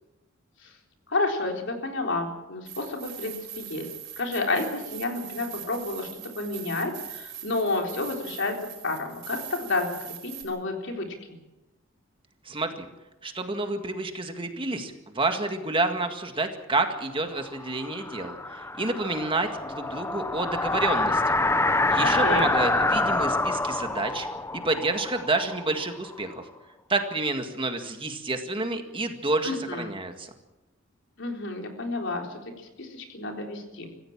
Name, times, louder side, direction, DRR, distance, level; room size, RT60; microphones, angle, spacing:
voice 1, 1.1-3.9 4.2-8.6 8.8-11.1 22.0-22.5 29.4-29.8 31.2-32.4 32.8-33.9, left 2 dB, 65° left, 2 dB, 4.0 m, -30 dB
sound 1, 2.7-10.4, right 10 dB, 55° right, 5.3 m, -42 dB
voice 2, 12.5-12.9 13.2-21.4 21.9-24.3 24.5-26.4 26.9-30.3, right 2 dB, 25° right, 5 dB, 1.9 m, -29 dB
sound 2, 17.4-26.2, left 2 dB, 15° left, 0.9 m, -26 dB
26.0 x 15.5 x 7.4 m, 1.0 s
head